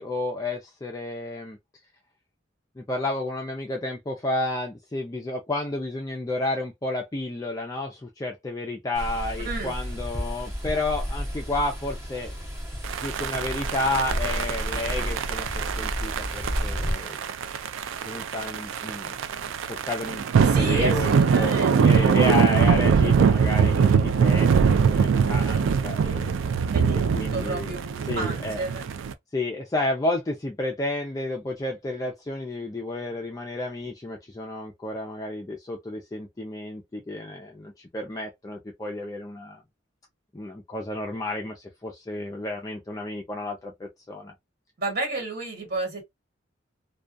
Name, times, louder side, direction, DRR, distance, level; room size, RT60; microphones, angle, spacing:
voice 1, 0.0-1.6 2.8-12.3 13.0-17.2 18.0-21.1 21.4-26.4 27.1-27.7 28.1-28.6 29.3-39.6 40.3-44.3, left 2 dB, 20° left, 0.4 m, -31 dB
sound 1, 9.0-16.9, equal, 15° right, 0.7 m, -32 dB
sound 2, 12.8-29.1, right 6 dB, 75° right, 0.3 m, -23 dB
voice 2, 20.4-22.1 26.7-28.9 44.8-46.0, right 2 dB, 50° right, 1.4 m, -32 dB
2.3 x 2.2 x 2.4 m
head